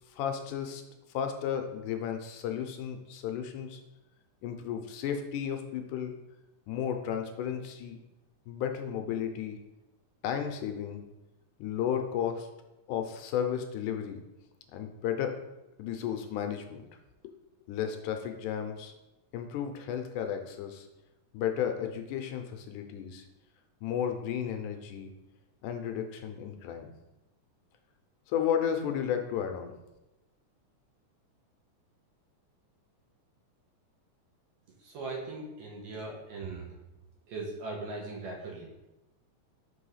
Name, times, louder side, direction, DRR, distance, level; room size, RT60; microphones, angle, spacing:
voice 1, 0.1-0.8 1.1-3.8 4.4-6.1 6.7-8.0 8.5-9.6 10.2-11.0 11.6-12.5 12.9-14.2 14.7-15.4 15.8-16.8 17.7-18.9 19.3-20.9 21.3-23.2 23.8-25.1 25.6-26.9 28.3-29.7, left 8 dB, 80° left, 5 dB, 2.1 m, -33 dB
voice 2, 34.8-36.8 37.3-38.7, right 3 dB, 65° right, -1 dB, 2.0 m, -39 dB
5.4 x 3.4 x 5.6 m, 0.98 s
omnidirectional pair, 3.6 m